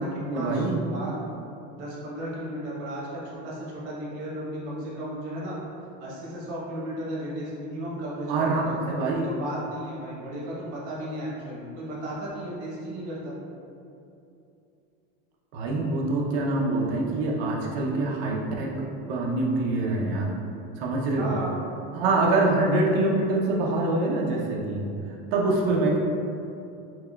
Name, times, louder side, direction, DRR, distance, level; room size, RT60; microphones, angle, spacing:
voice 1, 0.3-0.8 8.3-9.3 15.5-20.3 20.8-21.3 21.9-26.0, right 2 dB, 65° right, -2 dB, 0.7 m, -25 dB
voice 2, 1.7-5.6 6.0-8.9 9.2-13.3 21.2-21.6, right 1 dB, 90° right, -6 dB, 1.1 m, -35 dB
5.9 x 2.2 x 2.3 m, 2.7 s
supercardioid pair, 150°, 33 cm